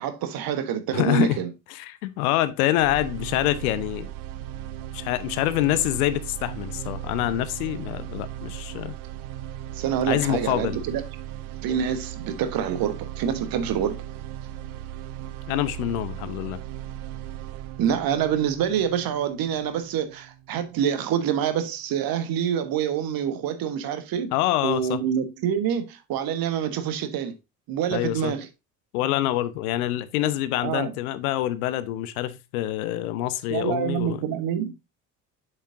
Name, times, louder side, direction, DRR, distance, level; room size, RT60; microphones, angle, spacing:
voice 1, 0.0-1.5 9.7-11.0 11.6-14.0 17.8-24.3 24.6-27.3 27.7-28.5 30.6-30.9 33.5-34.7, right 8 dB, 45° right, 1.4 m, -26 dB
voice 2, 0.9-1.4 1.7-4.1 4.9-9.0 10.1-10.8 15.5-16.6 24.3-25.0 27.9-28.3 28.9-34.2, left 14 dB, 60° left, 0.8 m, -26 dB
sound 1, 2.8-20.8, right 12 dB, 60° right, 0.8 m, -37 dB
7.7 x 6.8 x 2.6 m
figure-of-eight pair, 60°, 49 cm